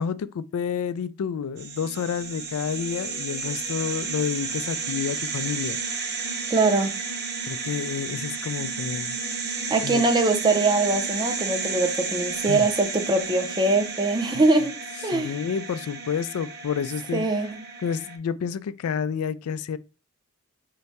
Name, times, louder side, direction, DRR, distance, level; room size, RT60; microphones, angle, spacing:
voice 1, 0.0-5.8 7.5-9.2 9.5-10.0 12.5-12.7 15.1-17.5 17.8-19.8, left 7 dB, 75° left, 0.3 m, -30 dB
sound 1, 1.6-18.2, right 4 dB, 50° right, 0.8 m, -32 dB
voice 2, 6.5-7.0 9.7-14.8 15.0-15.3 17.1-17.5, right 3 dB, 20° right, 0.5 m, -22 dB
4.6 x 2.2 x 4.1 m
head